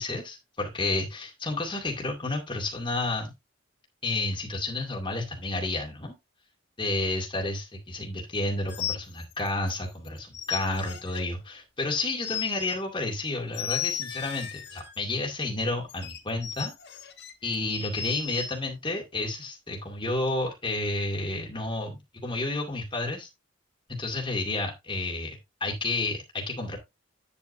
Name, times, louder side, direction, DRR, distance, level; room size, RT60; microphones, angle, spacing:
voice 1, 0.0-3.3 4.0-6.1 6.8-16.7 17.4-23.3 23.9-26.8, left 2 dB, 25° left, 0 dB, 2.3 m, -31 dB
sound 1, 8.7-9.8 10.1-11.2 11.9-12.8 13.5-15.0 15.9-18.6, left 9 dB, 60° left, 1.4 m, -35 dB
9.2 x 8.4 x 2.7 m, 0.22 s
head